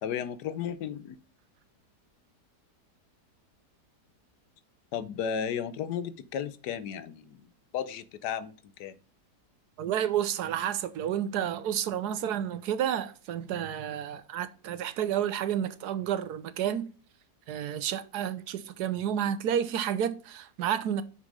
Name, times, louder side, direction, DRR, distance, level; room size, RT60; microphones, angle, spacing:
voice 1, 0.0-1.2 4.9-7.5 7.7-8.5 8.8-9.0, left 8 dB, 80° left, 1.3 m, -34 dB
voice 2, 9.8-16.9 17.5-21.0, right 10 dB, 75° right, 1.4 m, -30 dB
6.7 x 6.2 x 5.4 m
omnidirectional pair, 1.7 m